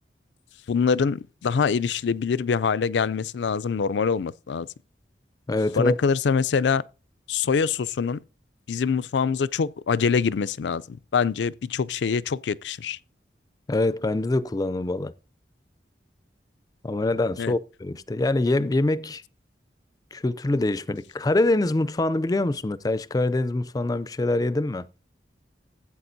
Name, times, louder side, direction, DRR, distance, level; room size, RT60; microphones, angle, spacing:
voice 1, 0.7-4.7 5.8-6.8 7.3-8.2 8.7-13.0 17.4-17.6, left 6 dB, 85° left, 0.4 m, -24 dB
voice 2, 5.5-6.0 13.7-15.1 16.8-19.2 20.1-24.9, left 2 dB, 20° left, 0.4 m, -24 dB
15.5 x 8.5 x 2.7 m
head